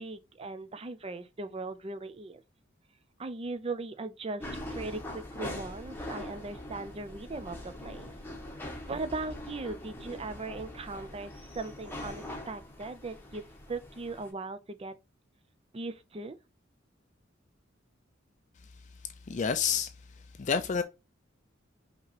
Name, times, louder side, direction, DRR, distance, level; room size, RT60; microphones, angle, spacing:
voice 1, 0.0-2.4 3.2-8.1 8.9-13.4 13.7-14.9 15.7-16.4, right 3 dB, 30° right, 0.5 m, -39 dB
sound 1, 4.4-14.3, left 1 dB, 10° left, 1.0 m, -42 dB
voice 2, 19.3-19.9 20.4-20.8, left 6 dB, 40° left, 0.4 m, -28 dB
5.5 x 2.9 x 2.8 m
head